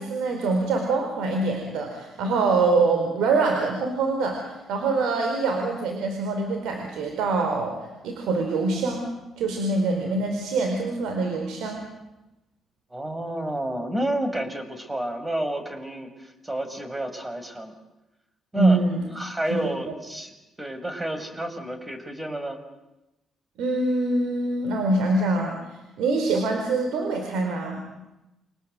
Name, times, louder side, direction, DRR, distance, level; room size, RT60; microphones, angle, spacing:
voice 1, 0.0-9.1 9.4-11.9 18.5-19.0 19.5-19.6 23.6-27.9, right 3 dB, 85° right, 3 dB, 4.5 m, -24 dB
voice 2, 12.9-17.7 18.5-18.8 19.1-22.6, right 1 dB, 15° right, 8 dB, 5.1 m, -30 dB
28.5 x 24.5 x 7.9 m, 0.96 s
cardioid pair, 90°, 0 cm